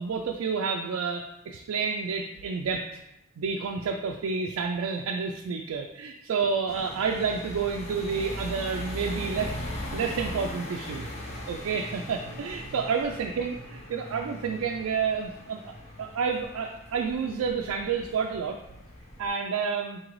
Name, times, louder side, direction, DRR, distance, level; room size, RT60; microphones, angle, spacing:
voice 1, 0.0-2.9 3.4-9.5 9.9-11.1 11.5-18.6 19.2-20.0, right 5 dB, 90° right, 2 dB, 0.3 m, -30 dB
sound 1, 6.7-19.3, left 1 dB, 30° left, 0.6 m, -39 dB
3.9 x 3.8 x 3.1 m, 0.86 s
head